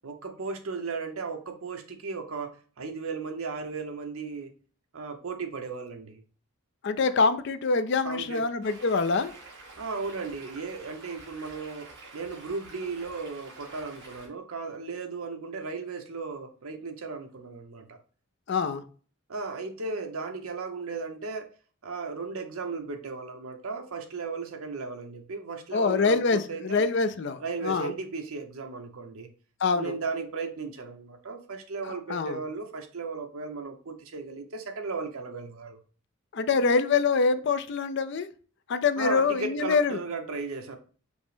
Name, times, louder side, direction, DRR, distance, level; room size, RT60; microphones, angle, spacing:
voice 1, 0.0-4.5 4.9-6.2 8.0-8.4 9.8-18.0 19.3-21.5 21.8-26.8 27.4-29.3 29.7-35.8 39.0-40.8, right 4 dB, 75° right, 0.8 m, -36 dB
voice 2, 6.8-9.3 18.5-18.8 25.7-27.9 29.6-29.9 31.8-32.4 36.3-38.3 38.7-40.0, left 4 dB, 50° left, 0.4 m, -25 dB
Stream, 8.6-14.3, right 3 dB, 55° right, 1.8 m, -48 dB
5.2 x 2.1 x 4.9 m
head